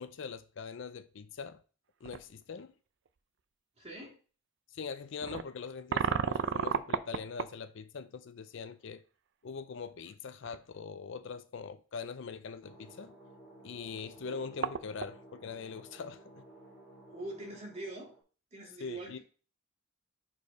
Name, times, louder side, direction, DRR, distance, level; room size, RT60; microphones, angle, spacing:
voice 1, 0.0-1.6 2.0-2.7 4.7-9.0 9.4-13.1 13.6-16.4 18.8-19.2, left 5 dB, 60° left, 0.4 m, -42 dB
sound 1, 2.0-2.2 3.1-3.2 5.2-7.6 10.1-10.2 10.5-10.6 14.0-14.1 14.3-15.2, right 6 dB, 60° right, 0.4 m, -33 dB
voice 2, 3.8-4.2 17.1-18.1 18.5-19.2, right 1 dB, 30° right, 2.3 m, -43 dB
sound 2, 12.6-18.2, right 1 dB, 5° left, 2.5 m, -55 dB
4.8 x 4.5 x 5.2 m
head